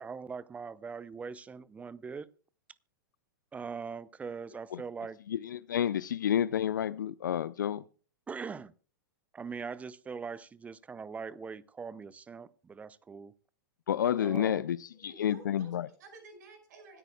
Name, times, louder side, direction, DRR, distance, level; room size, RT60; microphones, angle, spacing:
voice 1, 0.0-2.3 3.5-5.2 8.3-8.7 9.3-13.3 14.2-14.6, right 5 dB, 15° right, 0.5 m, -41 dB
voice 2, 5.3-7.8 13.9-15.9, left 10 dB, 65° left, 0.4 m, -30 dB
voice 3, 15.0-17.0, right 2 dB, 55° right, 5.4 m, -53 dB
25.5 x 9.0 x 2.3 m
figure-of-eight pair, 100°, 11 cm